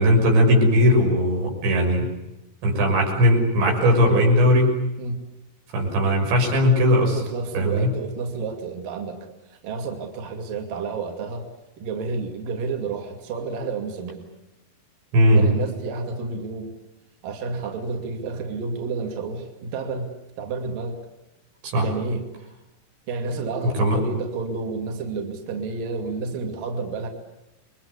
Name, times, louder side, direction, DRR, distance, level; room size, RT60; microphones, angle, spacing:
voice 1, 0.0-2.1 2.6-4.8 5.7-7.2 7.5-7.9 15.1-15.5 21.6-21.9 23.8-24.0, equal, 85° right, 2 dB, 8.7 m, -18 dB
voice 2, 7.2-11.5 11.8-14.3 15.3-16.7 17.2-20.1 20.4-21.0 21.8-22.3 23.1-27.1, right 4 dB, 55° right, 3 dB, 3.9 m, -30 dB
29.5 x 23.0 x 8.3 m, 0.96 s
omnidirectional pair, 5.0 m